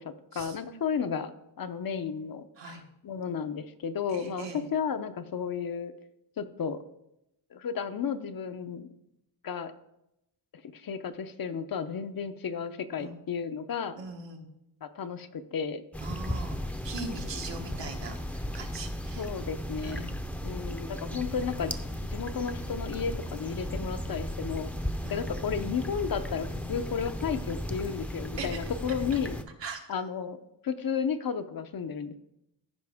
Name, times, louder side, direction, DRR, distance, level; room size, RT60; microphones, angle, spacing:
voice 1, 0.0-2.8 3.0-5.9 6.4-6.8 7.5-8.9 9.4-9.7 10.7-13.9 14.8-15.8 19.2-20.1 20.4-21.7 22.1-24.7 25.1-29.4 29.9-30.4 30.6-32.1, left 6 dB, 50° left, 10 dB, 0.7 m, -33 dB
voice 2, 4.1-4.6 13.0-13.2 14.0-14.5 16.0-19.3 19.8-20.2 25.0-25.3 28.4-28.6 29.6-30.0, right 3 dB, 75° right, 3 dB, 1.6 m, -40 dB
sound 1, 15.9-29.4, equal, 5° left, 0.6 m, -35 dB
14.5 x 5.3 x 3.5 m, 0.85 s
cardioid pair, 100°, 44 cm